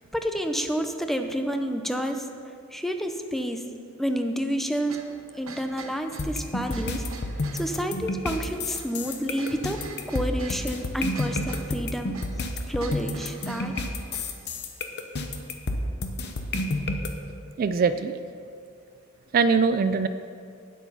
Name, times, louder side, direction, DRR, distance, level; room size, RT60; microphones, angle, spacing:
voice 1, 0.1-2.3 2.7-3.6 4.0-5.0 5.4-7.0 7.5-12.2 12.7-13.8, equal, ahead, 6 dB, 0.5 m, -29 dB
sound 1, 4.9-14.4, right 4 dB, 85° right, 1.0 m, -45 dB
sound 2, 6.2-17.1, left 2 dB, 55° left, 0.8 m, -30 dB
voice 2, 17.6-18.2 19.3-20.1, right 5 dB, 45° right, 11 dB, 0.3 m, -22 dB
9.2 x 8.3 x 5.5 m, 2.3 s
head